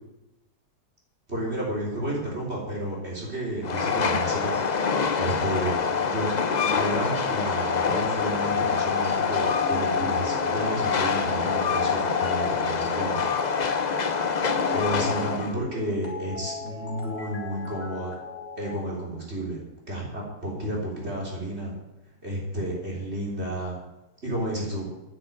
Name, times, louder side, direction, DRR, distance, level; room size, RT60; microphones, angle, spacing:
voice 1, 1.3-4.6 5.2-6.3 6.6-13.3 14.7-18.1 18.6-21.7 22.2-23.8 24.2-24.9, right 1 dB, 40° right, -3 dB, 3.7 m, -31 dB
Train, 3.6-15.5, left 5 dB, 40° left, 0.6 m, -25 dB
sound 1, 9.5-18.8, left 2 dB, 60° left, 2.8 m, -38 dB
10.0 x 9.0 x 8.5 m, 0.96 s
omnidirectional pair, 1.7 m